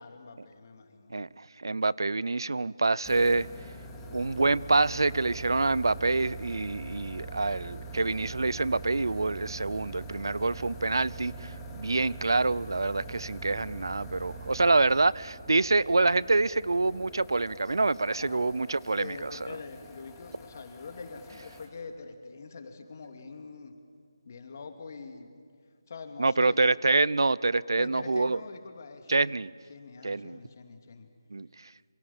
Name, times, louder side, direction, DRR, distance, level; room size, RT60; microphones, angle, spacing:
voice 1, 0.0-1.2 18.1-18.5 19.0-23.8 24.2-25.3 25.9-26.6 27.8-29.4 29.7-31.1, left 4 dB, 40° left, 5 dB, 2.6 m, -44 dB
voice 2, 1.1-3.5 4.1-19.3 26.2-28.4 29.1-29.5 30.0-30.4 31.3-31.5, right 3 dB, 70° right, 21 dB, 0.7 m, -26 dB
sound 1, 3.0-21.7, right 2 dB, 10° left, 2.5 m, -43 dB
28.5 x 27.0 x 7.3 m, 2.1 s
figure-of-eight pair, 160°, 2 cm